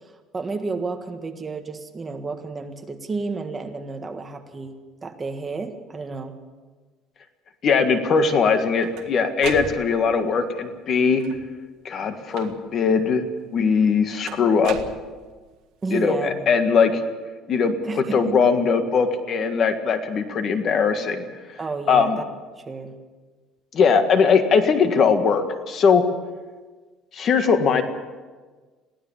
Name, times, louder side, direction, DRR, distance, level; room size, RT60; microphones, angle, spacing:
voice 1, 0.3-4.8 5.0-6.4 15.8-16.5 17.8-18.4 21.6-22.2 22.6-23.0, right 4 dB, 20° right, 5 dB, 1.5 m, -31 dB
voice 2, 7.6-11.2 11.8-13.3 13.5-14.8 15.9-17.0 17.5-21.2 21.9-22.2 23.7-26.0 27.1-27.8, left 5 dB, 40° left, 8 dB, 1.7 m, -20 dB
sound 1, 8.4-10.2 11.1-11.6 12.3-12.9 14.3-15.5, right 10 dB, 70° right, 1.7 m, -38 dB
22.5 x 16.5 x 7.2 m, 1.4 s
cardioid pair, 155°, 0 cm